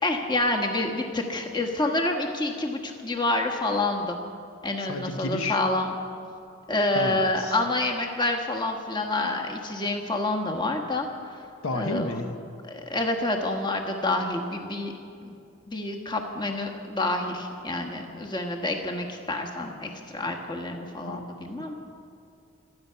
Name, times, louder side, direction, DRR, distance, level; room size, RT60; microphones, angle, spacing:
voice 1, 0.0-4.2 4.6-5.9 6.7-11.1 11.7-12.2 12.6-14.9 15.2-15.3 15.7-21.8, left 2 dB, 20° left, 2 dB, 1.3 m, -28 dB
voice 2, 4.9-5.6 6.9-7.6 11.6-12.4 21.0-21.2, left 2 dB, 70° left, 6 dB, 0.9 m, -31 dB
26.5 x 9.6 x 5.7 m, 2.5 s
head